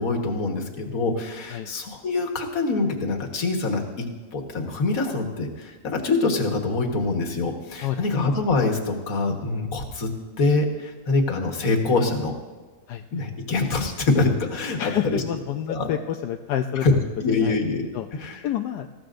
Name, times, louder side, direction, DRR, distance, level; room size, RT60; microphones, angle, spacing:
voice 1, 0.0-10.1 10.4-12.3 13.1-15.2 15.7-15.9 16.8-16.9 17.2-17.9 18.2-18.4, left 3 dB, 55° left, 2 dB, 1.8 m, -24 dB
voice 2, 12.9-13.3 14.8-16.9 17.3-17.6 17.9-18.1 18.4-18.9, left 11 dB, 80° left, 5 dB, 1.2 m, -28 dB
19.5 x 15.0 x 2.6 m, 1.3 s
omnidirectional pair, 1.8 m